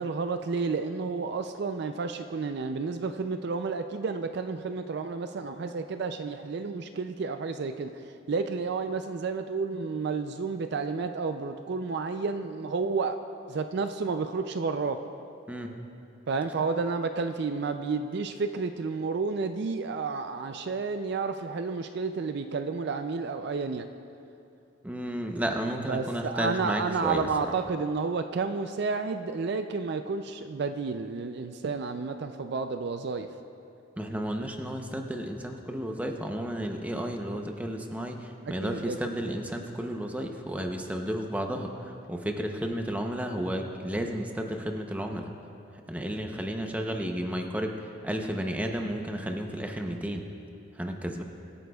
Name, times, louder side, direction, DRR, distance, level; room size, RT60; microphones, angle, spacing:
voice 1, 0.0-13.2 13.5-15.0 16.3-23.9 25.7-33.3 38.5-39.1, right 4 dB, 55° right, 8 dB, 0.4 m, -31 dB
voice 2, 24.8-27.3 34.0-45.3 45.9-50.2 50.8-51.2, equal, 5° right, 3 dB, 0.7 m, -32 dB
23.5 x 9.1 x 2.3 m, 2.7 s
head